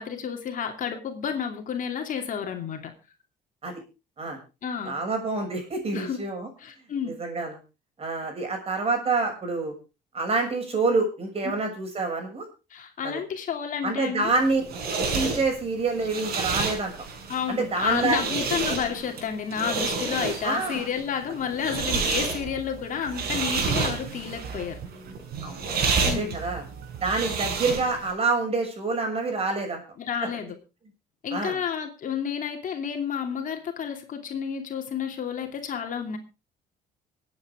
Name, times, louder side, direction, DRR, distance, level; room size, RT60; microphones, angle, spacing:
voice 1, 0.0-2.9 4.6-5.0 5.9-6.2 6.6-7.1 12.7-14.3 17.3-24.8 26.0-26.4 30.0-30.5 31.2-36.2, left 7 dB, 50° left, 4 dB, 2.7 m, -30 dB
voice 2, 4.8-6.5 7.0-7.6 8.0-9.7 10.1-12.4 13.0-13.2 13.8-14.6 14.9-16.9 17.5-18.2 20.4-20.9 25.4-25.6 26.0-26.6 27.0-29.8 30.2-30.3 31.3-31.6, right 3 dB, 35° right, 4 dB, 6.6 m, -27 dB
sound 1, 14.3-28.1, right 4 dB, 65° right, 5.1 m, -30 dB
sound 2, 21.7-27.4, right 6 dB, 85° right, 3.6 m, -41 dB
24.5 x 8.9 x 3.6 m, 0.31 s
cardioid pair, 110°, 17 cm